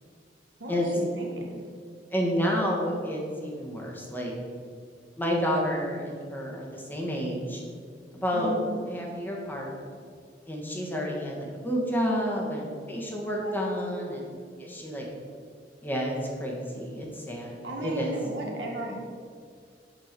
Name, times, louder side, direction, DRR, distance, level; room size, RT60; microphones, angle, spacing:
voice 1, 0.6-1.6 8.3-8.7 13.4-13.7 17.6-18.9, equal, 90° right, -1 dB, 1.7 m, -35 dB
voice 2, 2.1-4.3 5.1-7.6 8.1-8.5 8.9-9.7 10.5-15.0 15.8-18.1, equal, 10° left, -2 dB, 1.4 m, -30 dB
7.6 x 4.5 x 6.7 m, 2.1 s
head